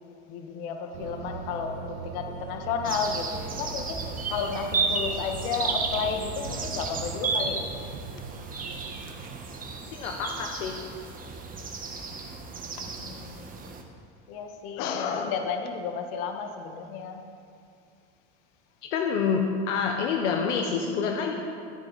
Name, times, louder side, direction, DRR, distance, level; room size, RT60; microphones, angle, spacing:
voice 1, 0.3-7.7 12.8-13.5 14.3-17.2, left 6 dB, 60° left, 4 dB, 1.7 m, -32 dB
sound 1, 0.9-9.4, right 6 dB, 55° right, 1.4 m, -41 dB
sound 2, 2.8-13.8, right 4 dB, 25° right, 1.3 m, -33 dB
voice 2, 9.8-10.8 18.9-21.3, left 6 dB, 80° left, 2 dB, 1.2 m, -27 dB
14.5 x 9.8 x 4.2 m, 2.4 s
supercardioid pair, 120°, 36 cm